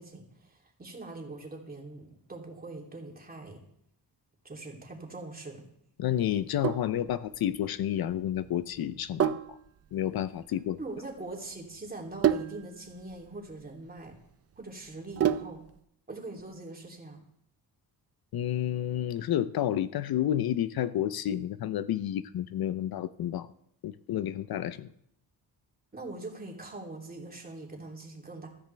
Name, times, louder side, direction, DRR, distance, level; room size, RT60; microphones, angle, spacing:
voice 1, 0.0-3.6 4.4-5.6 10.8-14.1 14.6-15.6 16.1-17.2 25.9-28.5, right 2 dB, 25° right, -1 dB, 3.0 m, -42 dB
voice 2, 6.0-9.6 9.9-10.8 18.3-23.5 23.8-24.9, left 11 dB, 70° left, 14 dB, 0.6 m, -30 dB
Sink (filling or washing), 6.3-15.8, right 10 dB, 40° right, 0.5 m, -33 dB
15.0 x 13.5 x 3.4 m, 0.73 s
cardioid pair, 115°, 38 cm